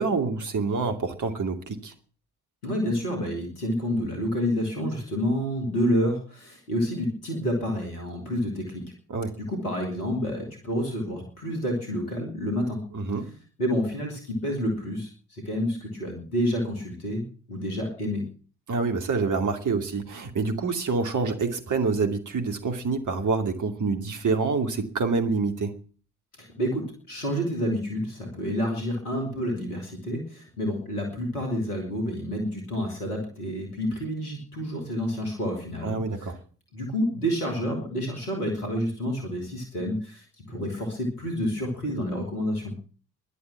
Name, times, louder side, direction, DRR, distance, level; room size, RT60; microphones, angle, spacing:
voice 1, 0.0-1.9 9.1-9.3 12.9-13.3 18.7-25.8 35.8-36.4, right 4 dB, 40° right, 5 dB, 2.6 m, -27 dB
voice 2, 2.6-8.8 9.4-12.8 13.6-17.2 17.5-18.2 26.4-36.3 36.7-42.7, equal, 85° left, 3 dB, 2.9 m, -29 dB
12.0 x 11.0 x 8.8 m, 0.41 s
figure-of-eight pair, 40°, 44 cm